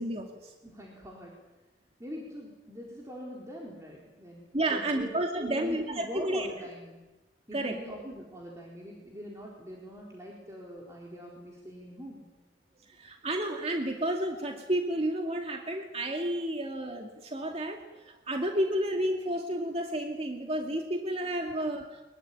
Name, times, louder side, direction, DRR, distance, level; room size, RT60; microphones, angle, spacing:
voice 1, 0.0-0.5 4.5-6.5 7.5-7.8 12.9-17.8 18.3-22.0, right 1 dB, 35° right, 2 dB, 2.4 m, -31 dB
voice 2, 0.6-1.3 2.0-7.0 7.5-12.2, equal, 20° right, -3 dB, 4.4 m, -43 dB
24.0 x 22.5 x 9.9 m, 1.1 s
head